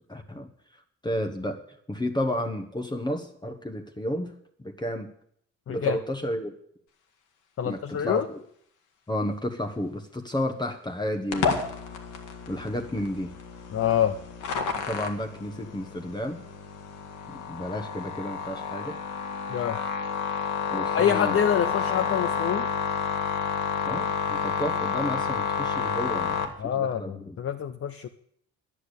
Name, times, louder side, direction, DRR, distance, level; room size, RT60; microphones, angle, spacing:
voice 1, 0.1-0.5 1.0-1.6 1.9-4.3 4.6-5.1 5.7-6.5 7.6-8.4 9.1-11.6 12.5-13.3 14.7-16.4 17.3-19.0 20.7-21.4 23.9-27.4, left 1 dB, 15° left, 4 dB, 1.2 m, -32 dB
voice 2, 5.7-6.0 7.6-8.3 13.7-14.2 19.5-19.8 20.9-22.6 26.6-28.1, left 9 dB, 50° left, 7 dB, 0.7 m, -26 dB
sound 1, 11.3-26.4, left 6 dB, 80° left, 1.8 m, -30 dB
11.0 x 8.4 x 8.3 m, 0.67 s
cardioid pair, 90°, 30 cm